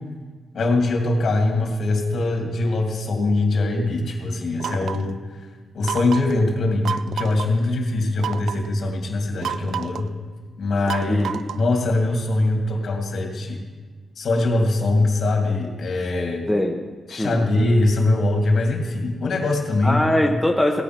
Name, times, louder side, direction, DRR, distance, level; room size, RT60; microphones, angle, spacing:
voice 1, 0.5-5.5 5.7-10.1 10.6-11.3 11.5-13.6 14.2-16.4 17.1-20.0, left 2 dB, 60° left, 1 dB, 2.4 m, -22 dB
sound 1, 4.6-5.1 5.8-6.4 6.8-7.5 8.2-8.7 9.4-10.1 10.9-11.7, right 8 dB, 80° right, 0.4 m, -30 dB
voice 2, 11.1-11.4 16.5-16.8 17.1-17.3 19.8-20.8, left 1 dB, 5° left, 1 dB, 0.8 m, -21 dB
16.5 x 8.6 x 5.9 m, 1.5 s
wide cardioid pair, 155°, 0 cm